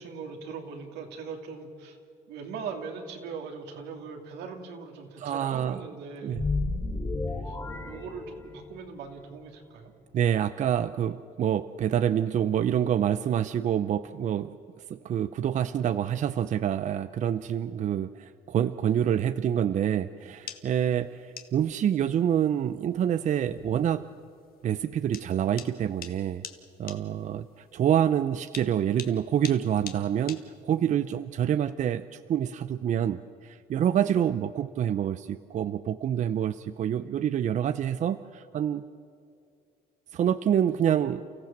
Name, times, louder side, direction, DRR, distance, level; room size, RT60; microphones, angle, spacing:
voice 1, 0.0-2.0 2.3-6.4 7.5-7.6 7.8-9.9 20.9-21.0, right 5 dB, 80° right, 3 dB, 2.8 m, -40 dB
voice 2, 5.2-5.8 6.2-6.4 10.1-14.5 14.9-24.0 24.6-26.4 26.8-27.5 27.7-38.8 40.1-41.3, right 9 dB, 45° right, 13 dB, 0.6 m, -27 dB
sound 1, 6.3-8.9, left 3 dB, 15° left, 3.0 m, -32 dB
sound 2, 20.2-31.0, left 9 dB, 65° left, 1.5 m, -46 dB
29.5 x 15.0 x 7.4 m, 2.4 s
cardioid pair, 110°, 17 cm